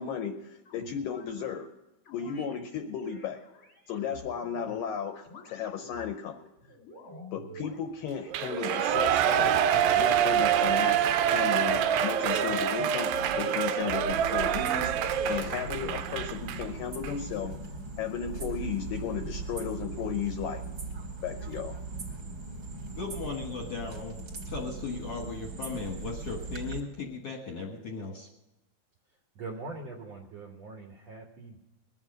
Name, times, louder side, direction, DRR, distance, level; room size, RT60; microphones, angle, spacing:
voice 1, 0.0-1.7 2.1-3.4 3.9-6.5 7.3-9.5 9.9-11.0 11.3-17.5 18.0-20.6 21.2-21.8, left 7 dB, 75° left, 5 dB, 2.1 m, -35 dB
sound 1, 0.6-1.3 2.0-2.6 3.0-4.8 5.2-6.1 6.6-7.8 8.4-9.0 9.6-10.3 10.7-12.6 13.1-14.3 14.9-16.1, left 1 dB, 35° left, 1.3 m, -47 dB
Shout / Cheering, 8.3-16.6 17.0-17.1, right 9 dB, 85° right, 2.1 m, -26 dB
sound 2, 14.1-26.8, right 3 dB, 40° right, 2.0 m, -39 dB
voice 2, 22.9-24.2 24.4-28.3, left 4 dB, 60° left, 0 dB, 1.7 m, -37 dB
voice 3, 29.3-31.6, right 3 dB, 65° right, 1 dB, 1.6 m, -42 dB
21.0 x 7.3 x 6.4 m, 0.98 s
omnidirectional pair, 4.7 m